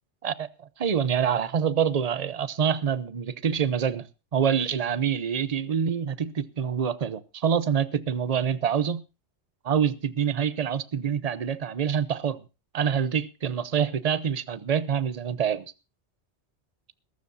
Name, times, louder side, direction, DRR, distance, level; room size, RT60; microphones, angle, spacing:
voice 1, 0.2-4.1 4.3-9.0 9.6-12.4 12.7-15.7, right 7 dB, 40° right, 0.7 m, -26 dB
21.5 x 12.5 x 2.7 m
omnidirectional pair, 1.2 m